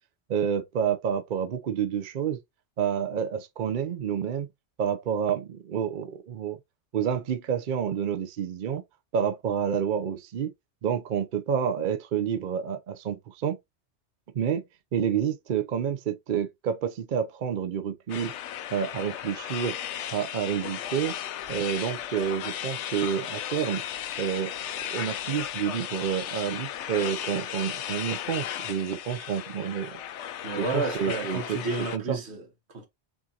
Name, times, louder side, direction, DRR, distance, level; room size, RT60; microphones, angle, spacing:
voice 1, 0.3-2.4 2.8-4.5 4.8-6.6 6.9-8.8 9.1-10.5 10.8-13.6 14.3-14.6 14.9-18.4 18.7-19.8 20.1-21.1 21.5-23.8 24.2-24.5 24.9-30.0 30.6-31.6 31.9-32.2, right 8 dB, 55° right, 0.6 m, -29 dB
sound 1, 18.1-32.0, left 10 dB, 85° left, 0.9 m, -35 dB
voice 2, 30.4-32.9, right 3 dB, 70° right, 1.5 m, -32 dB
6.1 x 2.5 x 2.7 m
omnidirectional pair, 1.2 m